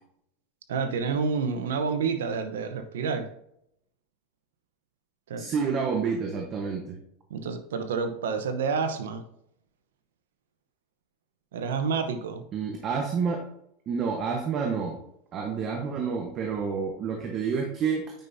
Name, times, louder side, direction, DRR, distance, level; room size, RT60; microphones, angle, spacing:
voice 1, 0.7-3.3 5.3-5.5 7.3-9.2 11.5-12.4, right 5 dB, 90° right, 9 dB, 0.9 m, -29 dB
voice 2, 5.4-7.0 12.5-13.4 13.9-15.0 15.3-18.1, right 5 dB, 40° right, 2 dB, 1.1 m, -29 dB
9.0 x 5.6 x 2.7 m, 0.74 s
supercardioid pair, 115°, 0 cm